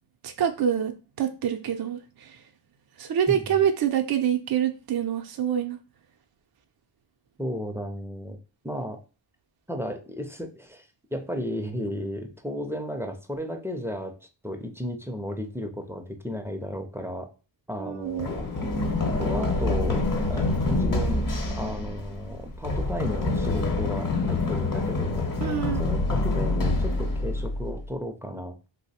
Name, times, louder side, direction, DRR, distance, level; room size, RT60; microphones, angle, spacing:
voice 1, 0.2-0.9 1.2-2.4 3.0-5.8 17.8-18.3 25.4-25.8, right 9 dB, 55° right, 5 dB, 0.5 m, -26 dB
voice 2, 7.4-8.4 8.6-9.0 9.7-14.1 14.4-17.3 17.7-18.5 19.2-20.0 20.3-21.3 21.6-25.2 25.8-28.5, equal, 5° right, 5 dB, 0.5 m, -34 dB
Run, 18.2-27.9, left 2 dB, 45° left, 0.9 m, -26 dB
2.9 x 2.0 x 4.1 m, 0.33 s
cardioid pair, 70°, 45 cm